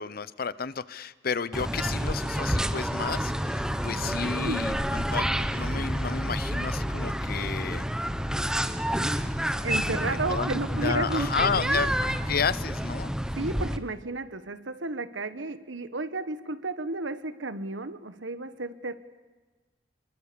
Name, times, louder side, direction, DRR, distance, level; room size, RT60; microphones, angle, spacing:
voice 1, 0.0-7.9 9.8-10.0 10.3-13.1, left 5 dB, 55° left, 18 dB, 0.7 m, -32 dB
sound 1, 1.5-13.8, equal, 5° right, 1.0 m, -29 dB
voice 2, 3.8-4.7 9.6-11.9 13.4-18.9, right 2 dB, 90° right, 12 dB, 1.3 m, -33 dB
27.5 x 23.0 x 6.9 m, 1.3 s
head